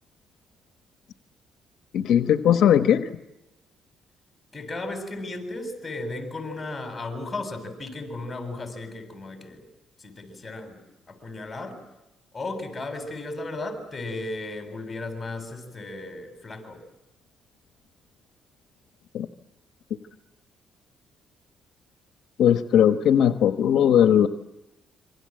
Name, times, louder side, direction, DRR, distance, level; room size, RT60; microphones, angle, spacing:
voice 1, 1.9-3.1 19.1-19.3 22.4-24.3, left 9 dB, 75° left, 1.1 m, -19 dB
voice 2, 4.5-9.6 10.0-11.8 12.3-16.8, left 2 dB, 20° left, 8.0 m, -35 dB
27.0 x 26.0 x 7.7 m
cardioid pair, 90°, 0 cm